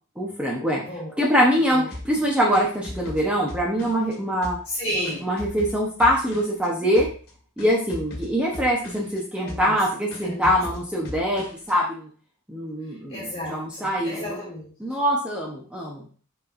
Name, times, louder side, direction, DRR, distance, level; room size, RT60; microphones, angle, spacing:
voice 1, 0.2-0.8 1.2-4.6 5.2-7.1 7.6-12.1 12.5-14.4 14.8-16.1, equal, 5° right, -3 dB, 0.9 m, -23 dB
voice 2, 0.7-1.2 1.7-1.8 4.6-5.3 9.4-9.8 10.2-10.5 13.1-14.7, equal, 25° left, -7 dB, 2.7 m, -32 dB
sound 1, 1.9-4.2 4.4-6.7 7.0-7.3 7.6-9.2 9.5-9.8 10.1-11.7, left 1 dB, 50° left, 1.8 m, -38 dB
6.3 x 6.0 x 2.6 m, 0.42 s
head